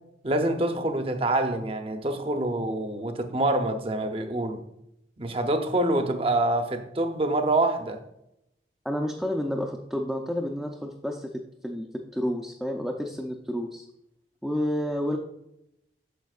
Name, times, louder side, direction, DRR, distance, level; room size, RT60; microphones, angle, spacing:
voice 1, 0.2-4.6 5.2-8.0, right 2 dB, 30° right, 0.7 m, -26 dB
voice 2, 8.8-13.9 14.4-15.2, equal, ahead, 0.5 m, -30 dB
9.2 x 6.9 x 2.4 m
head